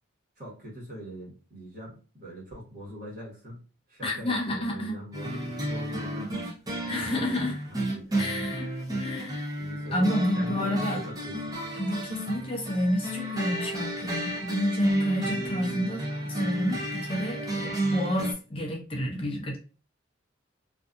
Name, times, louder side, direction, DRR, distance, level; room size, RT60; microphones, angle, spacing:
voice 1, 0.4-3.6 3.9-6.4 6.8-8.4 9.2-9.3 9.6-11.6, equal, 45° right, 1.3 m, -42 dB
voice 2, 4.0-5.0 5.3-5.4 6.9-7.6 8.2-8.7 9.0-9.5 9.9-11.0 11.7-19.6, left 1 dB, 25° left, 0.5 m, -29 dB
sound 1, 5.1-18.3, right 1 dB, 20° right, 0.6 m, -32 dB
2.6 x 2.5 x 2.4 m
head